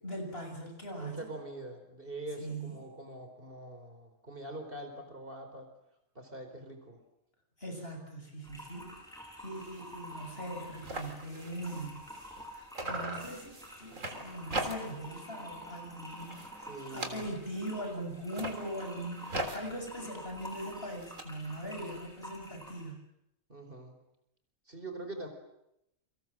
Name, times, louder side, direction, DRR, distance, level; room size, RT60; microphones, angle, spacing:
voice 1, 0.0-1.3 2.4-2.8 7.6-9.0 9.4-12.1 12.5-23.0, right 1 dB, 45° left, 3 dB, 7.2 m, -41 dB
voice 2, 1.0-5.7 6.1-7.0 16.6-17.2 23.5-23.9 24.7-25.3, right 2 dB, 40° right, 6 dB, 4.7 m, -44 dB
sound 1, 8.4-22.9, equal, ahead, 7.6 m, -48 dB
sound 2, 9.6-9.9 10.2-10.3 10.5-12.5 12.7-15.1 15.5-15.8 16.1-17.7 18.2-21.2, right 1 dB, 70° right, 3.9 m, -41 dB
29.5 x 25.0 x 7.6 m, 0.81 s
omnidirectional pair, 1.4 m